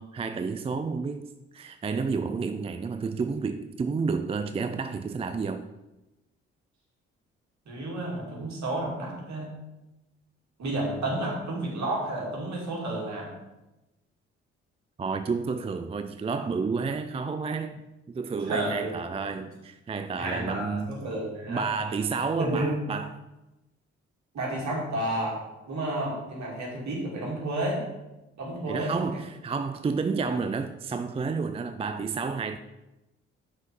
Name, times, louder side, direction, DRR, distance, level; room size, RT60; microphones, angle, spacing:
voice 1, 0.0-5.7 15.0-20.9 21.5-23.2 28.7-32.6, right 5 dB, 20° right, 9 dB, 0.4 m, -30 dB
voice 2, 7.7-9.5 10.6-13.3 18.4-18.9 19.3-19.4 20.2-21.7 22.4-22.7 24.3-25.4 25.7-27.8 28.4-29.1, right 1 dB, 55° right, -2 dB, 2.6 m, -31 dB
5.7 x 5.0 x 5.3 m, 1.0 s
figure-of-eight pair, 45°, 34 cm